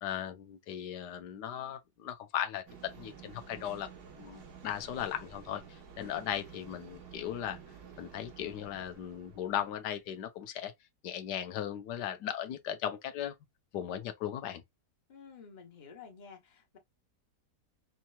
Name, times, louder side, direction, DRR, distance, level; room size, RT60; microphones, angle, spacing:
voice 1, 0.0-3.9 4.2-7.6 8.0-10.7 11.0-13.3 13.7-14.6, left 10 dB, 90° left, 1.3 m, -37 dB
sound 1, 2.7-9.9, right 6 dB, 70° right, 1.7 m, -51 dB
voice 2, 15.1-16.8, left 6 dB, 30° left, 1.0 m, -51 dB
5.4 x 2.9 x 2.4 m
omnidirectional pair, 1.8 m